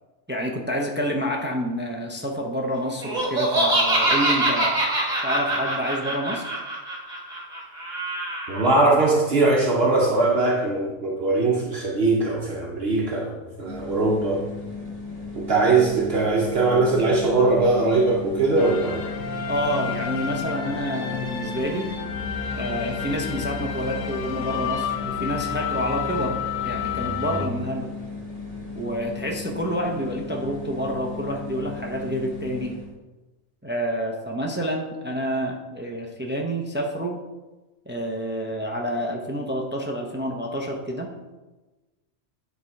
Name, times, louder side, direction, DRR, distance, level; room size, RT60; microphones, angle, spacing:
voice 1, 0.3-4.8 5.2-6.6 19.5-21.9 22.5-27.9 28.7-32.8 33.6-37.2 37.9-41.1, equal, 15° right, 1 dB, 0.5 m, -28 dB
Laughter, 3.0-8.6, right 1 dB, 35° right, 1.5 m, -24 dB
voice 2, 8.5-14.4 15.3-19.0, right 3 dB, 55° right, -2 dB, 1.1 m, -21 dB
sound 1, 13.6-32.9, left 3 dB, 30° left, 1.3 m, -36 dB
sound 2, 18.6-27.5, left 7 dB, 85° left, 1.1 m, -30 dB
10.0 x 3.4 x 4.6 m, 1.2 s
omnidirectional pair, 1.3 m